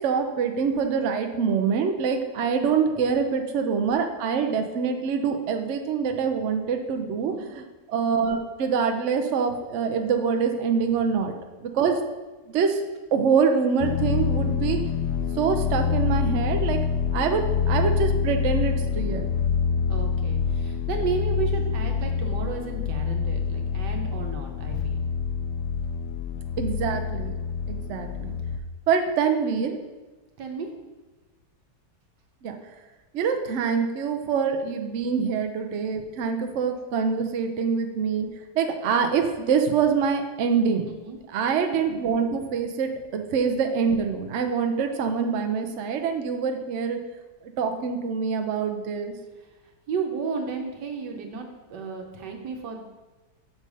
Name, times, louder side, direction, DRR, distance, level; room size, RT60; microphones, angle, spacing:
voice 1, 0.0-11.3 11.6-12.0 12.5-12.8 13.1-14.8 15.4-16.8 17.1-19.3 26.6-27.3 27.7-28.4 28.9-29.8 32.4-32.6 33.1-38.3 38.6-40.9 41.3-47.0 47.6-49.1, right 6 dB, 60° right, 5 dB, 0.8 m, -25 dB
voice 2, 7.2-7.5 18.8-19.4 19.9-25.0 30.4-30.7 40.9-41.2 49.4-49.5 49.9-52.8, right 5 dB, 85° right, 3 dB, 1.6 m, -33 dB
sound 1, 13.8-28.6, left 6 dB, 80° left, 1.2 m, -26 dB
6.6 x 4.8 x 5.4 m, 1.2 s
omnidirectional pair, 1.8 m